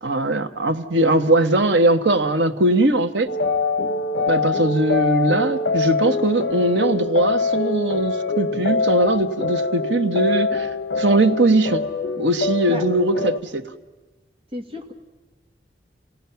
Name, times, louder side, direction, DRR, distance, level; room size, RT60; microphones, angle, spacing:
voice 1, 0.0-3.3 4.3-10.7 11.0-11.8 12.2-13.7, right 2 dB, 90° right, 7 dB, 1.2 m, -20 dB
sound 1, 3.3-13.4, left 4 dB, 85° left, 0.9 m, -24 dB
voice 2, 14.5-14.9, left 1 dB, 30° right, 4 dB, 1.9 m, -32 dB
30.0 x 17.5 x 5.8 m, 1.2 s
head